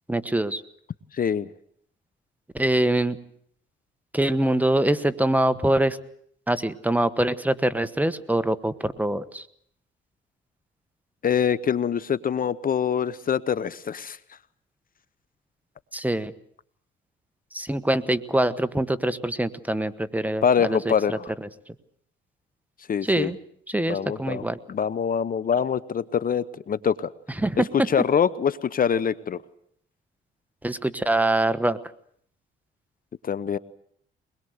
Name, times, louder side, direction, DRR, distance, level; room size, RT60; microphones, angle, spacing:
voice 1, 0.1-0.6 2.5-3.2 4.1-6.0 6.5-9.5 15.9-16.3 17.5-21.5 23.0-23.4 23.7-24.6 27.4-27.9 30.6-31.8, right 1 dB, 10° right, 12 dB, 1.3 m, -24 dB
voice 2, 1.1-1.5 11.2-14.2 20.4-21.2 22.9-23.3 23.9-24.4 24.7-27.1 27.9-29.4 33.2-33.6, left 7 dB, 45° left, 17 dB, 0.9 m, -24 dB
22.5 x 21.5 x 8.0 m, 0.65 s
cardioid pair, 90°, 20 cm